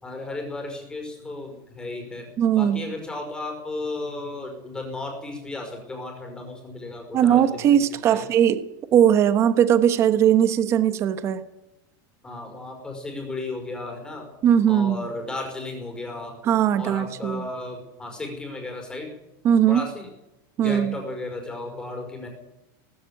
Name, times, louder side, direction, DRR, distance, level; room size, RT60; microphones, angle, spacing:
voice 1, 0.0-7.6 8.1-8.2 12.2-14.3 14.7-16.4 16.8-19.1 19.7-20.1 20.6-22.3, left 2 dB, 5° left, 3 dB, 5.3 m, -34 dB
voice 2, 2.4-2.8 7.1-8.7 8.9-11.4 14.4-15.0 16.4-17.4 19.4-19.9 20.6-20.9, right 9 dB, 25° right, 12 dB, 1.1 m, -19 dB
18.0 x 15.5 x 9.1 m, 0.90 s
supercardioid pair, 180°, 11 cm